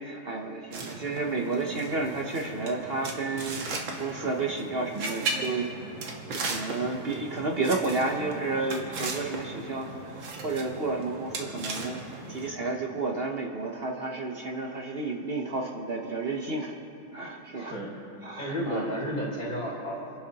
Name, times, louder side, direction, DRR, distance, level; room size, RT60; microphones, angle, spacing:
voice 1, 0.0-5.7 6.0-16.7 17.1-17.8 18.2-19.0, right 3 dB, 50° right, 2 dB, 0.7 m, -31 dB
sound 1, 0.7-12.5, right 3 dB, 75° right, 2.1 m, -37 dB
voice 2, 17.5-17.9 18.4-20.1, equal, 60° left, -8 dB, 3.9 m, -32 dB
30.0 x 11.0 x 2.9 m, 2.7 s
omnidirectional pair, 2.1 m